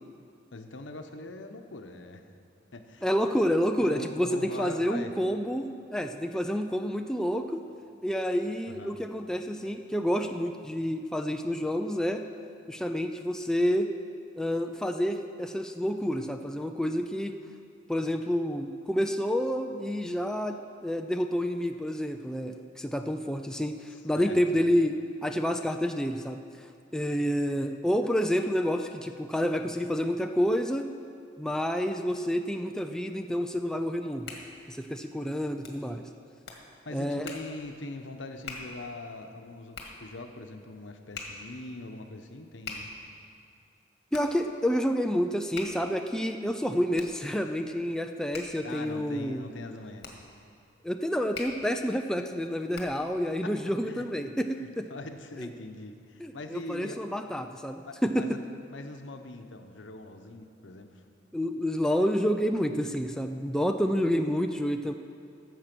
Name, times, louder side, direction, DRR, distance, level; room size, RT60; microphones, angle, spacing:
voice 1, 0.5-2.2 2.7-3.1 3.8-5.1 8.7-9.0 23.9-24.4 36.8-42.9 48.6-50.1 53.4-53.5 53.8-54.0 54.5-57.0 57.8-58.4 58.7-61.0, left 2 dB, 85° left, 6 dB, 0.9 m, -42 dB
voice 2, 3.0-5.6 5.9-7.6 8.0-12.2 12.7-13.9 14.4-17.4 17.9-23.7 24.0-25.0 25.2-26.4 26.9-30.9 31.4-34.3 34.7-36.0 36.9-37.3 44.1-49.4 50.8-54.5 54.8-54.9 55.4-55.5 56.2-58.3 61.3-64.9, equal, 5° left, 5 dB, 0.4 m, -29 dB
Hands, 34.0-53.2, left 3 dB, 60° left, 1.7 m, -46 dB
14.0 x 7.5 x 6.0 m, 2.3 s
head